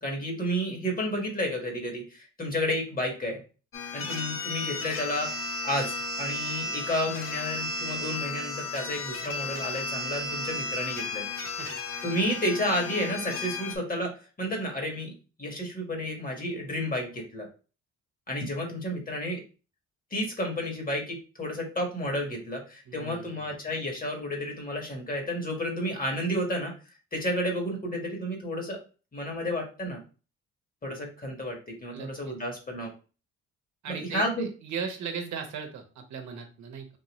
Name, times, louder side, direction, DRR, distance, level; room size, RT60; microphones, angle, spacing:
voice 1, 0.0-3.4 3.9-11.2 12.0-15.1 15.4-17.5 18.3-19.4 20.1-26.7 27.1-28.8 29.1-30.0 30.8-32.9 33.9-34.5, equal, 30° left, 1 dB, 1.4 m, -31 dB
sound 1, 3.7-13.8, left 3 dB, 45° left, 0.8 m, -34 dB
voice 2, 22.9-23.5 31.9-32.3 33.8-36.9, right 6 dB, 70° right, 4 dB, 0.9 m, -37 dB
3.8 x 2.6 x 2.9 m, 0.34 s
cardioid pair, 90°, 30 cm